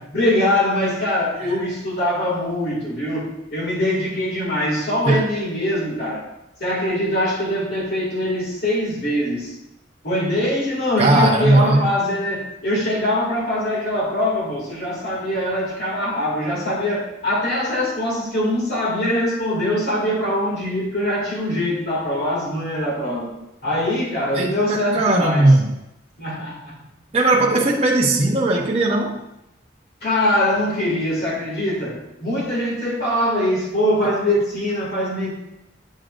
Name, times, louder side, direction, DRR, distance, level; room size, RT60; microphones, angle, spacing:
voice 1, 0.1-6.2 6.6-9.5 10.0-23.3 23.6-25.6 26.2-26.8 30.0-35.3, left 1 dB, 55° left, -4 dB, 2.4 m, -23 dB
voice 2, 11.0-11.8 24.3-25.7 27.1-29.2 34.0-34.1, right 2 dB, 35° right, -2 dB, 0.7 m, -17 dB
7.7 x 7.4 x 2.5 m, 0.85 s
head